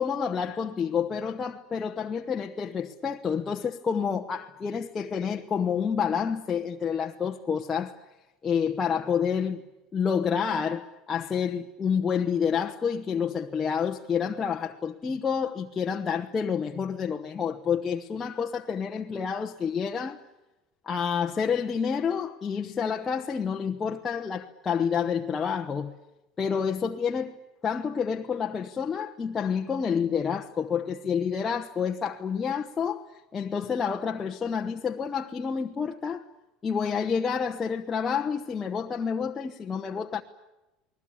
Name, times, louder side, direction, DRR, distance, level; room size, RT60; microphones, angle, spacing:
voice 1, 0.0-8.0 8.4-9.6 9.9-20.2 20.9-25.9 26.4-27.4 27.6-33.0 33.3-36.2 36.6-40.2, left 6 dB, 15° left, 0.9 m, -29 dB
29.5 x 20.5 x 8.7 m
cardioid pair, 175°, 0 cm